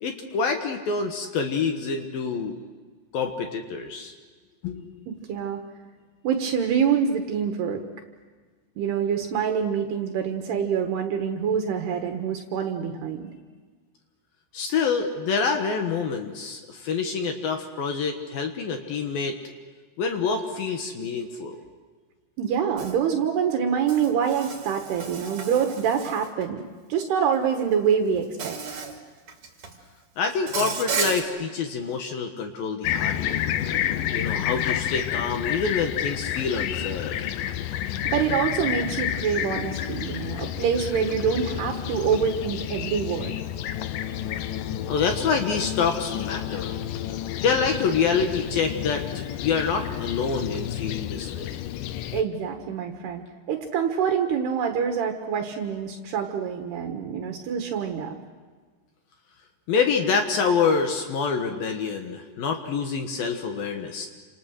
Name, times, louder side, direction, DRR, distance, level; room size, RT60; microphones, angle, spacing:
voice 1, 0.0-2.6 3.1-4.1 4.6-4.9 14.5-19.4 20.0-21.6 30.2-33.4 34.1-37.2 44.9-46.8 47.4-49.0 49.4-51.6 59.7-64.1, left 5 dB, 65° left, 4 dB, 2.9 m, -26 dB
voice 2, 5.1-5.6 6.2-7.8 8.8-13.3 15.8-15.9 22.4-26.6 26.9-28.8 38.0-43.4 52.1-58.2, right 7 dB, 75° right, 4 dB, 3.3 m, -26 dB
Insect, 22.8-22.9 23.9-26.4 27.6-27.7 28.4-29.0 29.3-29.8 30.5-31.2, right 5 dB, 40° right, 3.4 m, -33 dB
Fixed-wing aircraft airplane, 32.8-52.2, left 11 dB, 90° left, 1.8 m, -30 dB
29.5 x 27.0 x 6.5 m, 1.4 s
omnidirectional pair, 5.0 m